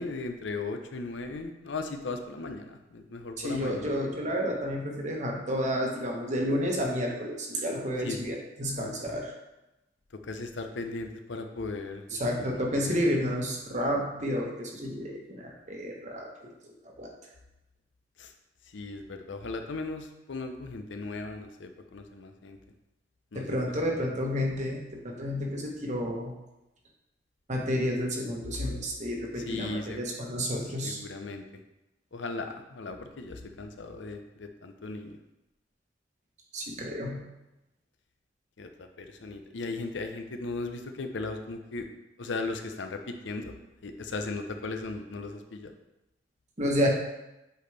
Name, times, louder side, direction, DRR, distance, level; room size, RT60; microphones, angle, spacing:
voice 1, 0.0-3.9 8.0-8.2 10.2-12.9 18.2-18.3 18.7-22.6 23.3-24.2 29.4-30.0 30.8-31.4 32.1-35.2 38.6-41.9 42.2-43.6 43.8-45.7, left 3 dB, 80° left, 6 dB, 0.7 m, -37 dB
voice 2, 3.4-9.3 12.1-16.3 16.8-17.1 23.3-26.3 27.5-31.0 36.5-37.2 46.6-46.9, equal, 40° right, 0 dB, 1.2 m, -30 dB
8.1 x 4.2 x 3.3 m, 0.95 s
head